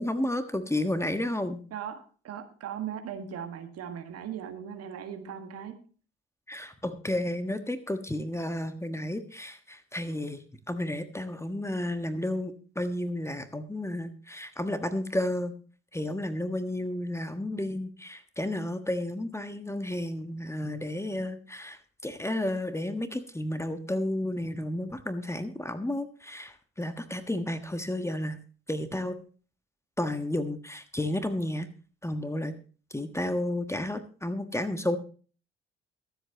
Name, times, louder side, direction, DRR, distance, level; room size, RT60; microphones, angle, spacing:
voice 1, 0.0-1.6 6.5-15.5 15.9-28.4 28.7-29.2 30.0-31.7 32.0-32.5 32.9-35.0, left 1 dB, 10° left, 9 dB, 1.4 m, -32 dB
voice 2, 1.7-5.8, right 8 dB, 55° right, 7 dB, 1.7 m, -38 dB
23.0 x 8.0 x 2.9 m, 0.39 s
figure-of-eight pair, 45°, 31 cm